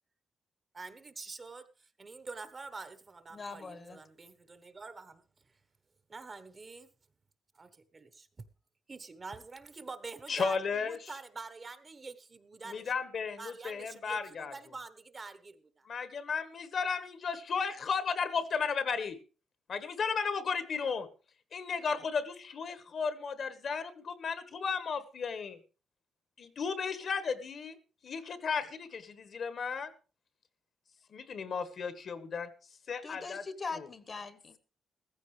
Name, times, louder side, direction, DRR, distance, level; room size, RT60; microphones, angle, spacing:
voice 1, 0.7-5.5 6.1-6.9 7.5-8.3 8.9-12.9 13.4-15.9, right 4 dB, 30° right, 1.0 m, -46 dB
voice 2, 3.3-4.0 33.0-34.6, left 4 dB, 30° left, 1.2 m, -41 dB
voice 3, 10.3-11.0 12.6-14.5 15.9-19.2 19.7-21.1 21.5-25.6 26.4-27.8 28.0-29.9 31.1-32.5 32.9-33.4 33.7-33.9, left 5 dB, 50° left, 1.4 m, -34 dB
15.0 x 15.0 x 3.3 m
cardioid pair, 135°, 0 cm